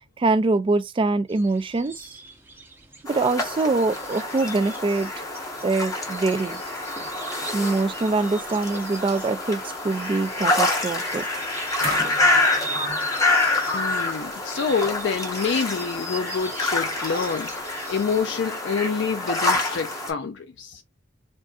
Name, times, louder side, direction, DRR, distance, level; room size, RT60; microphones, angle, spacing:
voice 1, 0.2-2.1 3.1-5.1 5.6-6.6 7.5-11.3, right 3 dB, 25° right, 0.3 m, -24 dB
sound 1, 1.3-18.2, right 2 dB, 10° right, 0.7 m, -41 dB
sound 2, 3.1-20.1, left 2 dB, 15° left, 0.9 m, -27 dB
sound 3, 10.9-11.2 11.8-15.1 16.1-16.2, right 4 dB, 50° right, 0.9 m, -39 dB
voice 2, 13.7-17.5 17.9-20.8, left 5 dB, 65° left, 0.4 m, -27 dB
3.6 x 2.5 x 2.3 m
head